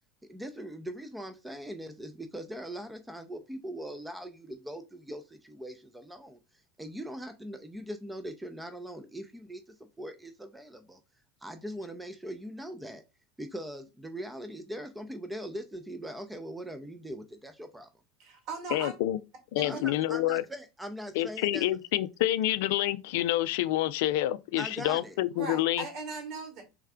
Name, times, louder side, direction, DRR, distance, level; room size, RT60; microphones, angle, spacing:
voice 1, 0.2-6.4 6.8-11.0 11.4-13.0 13.4-17.9 19.6-21.7 24.6-25.2, equal, 10° right, 0.6 m, -41 dB
voice 2, 18.2-19.0 19.6-19.8 25.3-26.6, right 4 dB, 55° right, 2.1 m, -38 dB
voice 3, 18.7-19.2 19.5-20.4 21.2-25.8, left 14 dB, 65° left, 0.3 m, -28 dB
3.4 x 3.2 x 3.6 m
hypercardioid pair, 85°, 0 cm